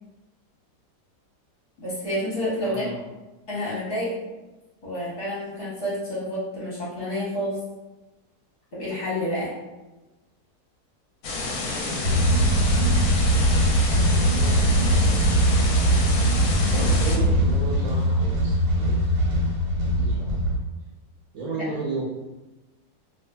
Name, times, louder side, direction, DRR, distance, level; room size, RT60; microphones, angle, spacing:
voice 1, 1.8-2.9 3.5-4.1 4.8-7.6 8.7-9.5 21.5-21.6, equal, 45° left, -9 dB, 0.9 m, -29 dB
voice 2, 2.6-3.0 11.3-12.5 13.9-15.8 16.7-19.0 19.9-20.3 21.3-22.1, right 3 dB, 65° right, -5 dB, 0.9 m, -35 dB
sound 1, 11.2-17.2, left 3 dB, 70° left, 0.9 m, -30 dB
sound 2, 12.0-20.6, right 1 dB, 90° right, 1.3 m, -21 dB
2.5 x 2.4 x 2.2 m, 1.1 s
omnidirectional pair, 1.7 m